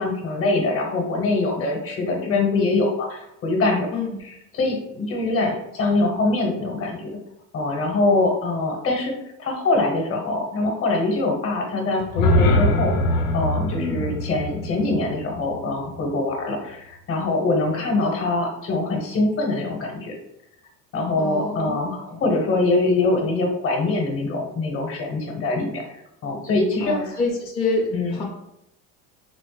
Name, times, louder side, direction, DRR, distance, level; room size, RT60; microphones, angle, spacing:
voice 1, 0.0-4.0 4.2-7.2 7.5-13.0 13.3-20.1 20.9-25.8 26.2-27.1 27.9-28.2, left 2 dB, 40° left, 1 dB, 0.9 m, -23 dB
sound 1, 12.0-16.1, left 1 dB, 90° left, 0.6 m, -23 dB
voice 2, 13.8-14.1 21.1-21.8 26.7-28.2, left 3 dB, 15° left, -3 dB, 0.6 m, -27 dB
4.2 x 2.0 x 3.1 m, 0.82 s
cardioid pair, 120°, 34 cm